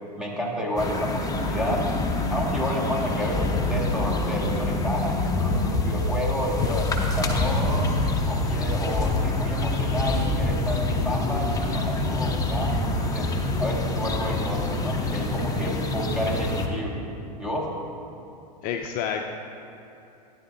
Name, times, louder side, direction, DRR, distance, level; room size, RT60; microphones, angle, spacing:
voice 1, 0.2-1.9 2.3-7.9 8.3-13.3 13.6-17.1 17.4-17.7, equal, ahead, -4 dB, 1.9 m, -30 dB
sound 1, 0.8-16.7, left 2 dB, 15° left, 0.9 m, -26 dB
voice 2, 18.6-19.3, left 8 dB, 40° left, 4 dB, 0.5 m, -29 dB
13.5 x 10.0 x 2.7 m, 2.8 s
hypercardioid pair, 105°, 21 cm